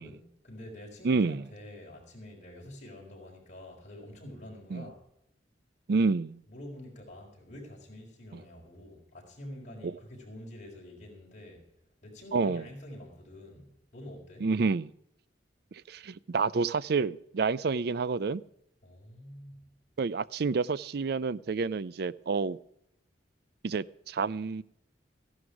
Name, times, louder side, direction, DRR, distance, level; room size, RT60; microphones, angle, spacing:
voice 1, 0.0-5.0 6.5-11.6 12.0-14.5 18.8-19.6, left 1 dB, 40° left, -2 dB, 4.8 m, -47 dB
voice 2, 1.0-1.4 4.7-4.8 5.9-6.4 9.8-9.9 12.3-12.6 14.4-14.9 15.7-18.4 20.0-22.6 23.6-24.6, right 4 dB, 60° right, 19 dB, 0.5 m, -29 dB
14.5 x 11.5 x 4.8 m, 0.77 s
head